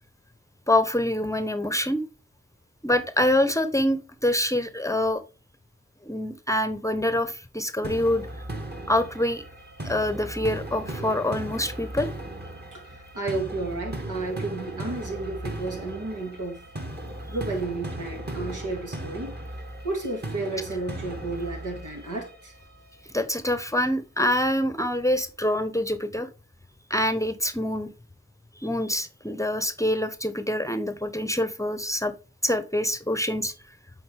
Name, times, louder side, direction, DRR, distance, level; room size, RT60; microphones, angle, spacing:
voice 1, 0.7-2.0 2.8-5.2 6.0-8.3 8.9-9.4 9.8-12.1 23.1-26.3 26.9-27.9 28.6-32.1 32.4-33.5, left 1 dB, 10° left, 0.8 m, -25 dB
sound 1, 7.8-22.8, right 1 dB, 35° right, 1.8 m, -37 dB
voice 2, 12.7-16.6 17.3-19.4 19.8-22.5, right 2 dB, 80° right, 2.1 m, -32 dB
7.9 x 3.9 x 3.4 m
cardioid pair, 40°, 31 cm